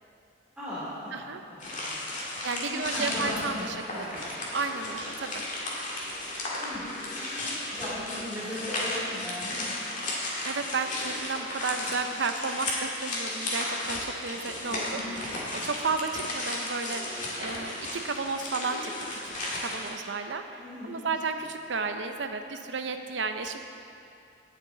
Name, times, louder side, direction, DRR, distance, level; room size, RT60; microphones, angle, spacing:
voice 1, 0.6-1.2 1.5-4.5 6.6-9.7 9.9-10.1 14.8-15.0 20.6-21.1, left 1 dB, 5° right, -12 dB, 3.0 m, -39 dB
sound 1, 1.6-19.9, left 2 dB, 40° left, 2.1 m, -34 dB
voice 2, 2.4-4.1 4.5-5.4 10.4-23.6, right 4 dB, 70° right, 7 dB, 0.7 m, -33 dB
sound 2, 3.0-19.0, left 1 dB, 60° left, 1.9 m, -51 dB
18.0 x 6.7 x 3.9 m, 2.6 s
head